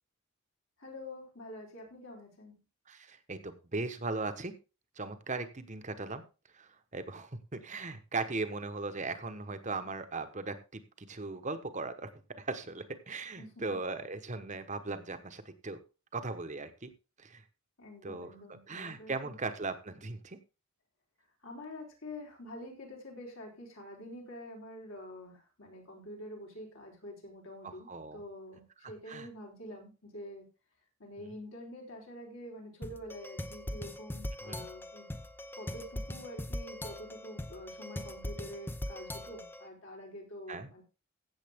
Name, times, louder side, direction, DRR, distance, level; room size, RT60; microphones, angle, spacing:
voice 1, 0.8-2.6 13.4-13.6 17.8-19.3 21.4-30.4 31.0-35.1 35.5-40.8, left 1 dB, 70° left, 0 dB, 4.0 m, -47 dB
voice 2, 2.9-4.6 5.0-6.2 6.5-12.1 12.4-15.8 16.1-16.9 17.2-17.4 18.0-20.4 27.6-28.2 28.8-29.3 31.2-31.3 34.4-34.7 40.5-40.7, right 3 dB, 35° right, 10 dB, 1.1 m, -38 dB
sound 1, 32.8-39.7, left 1 dB, 10° left, 0.6 m, -41 dB
15.5 x 7.3 x 3.6 m, 0.31 s
head